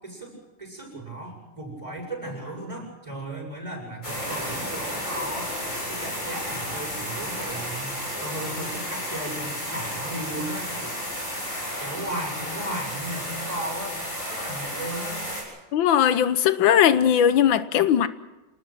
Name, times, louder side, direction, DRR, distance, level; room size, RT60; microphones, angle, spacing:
voice 1, 0.0-5.5 5.9-10.9 11.8-14.0 14.3-15.3, right 1 dB, 15° right, 7.7 m, -35 dB
sound 1, 4.0-15.4, equal, 40° left, 8.3 m, -32 dB
voice 2, 15.7-18.1, left 9 dB, 90° left, 1.7 m, -19 dB
27.5 x 19.5 x 6.2 m
omnidirectional pair, 2.0 m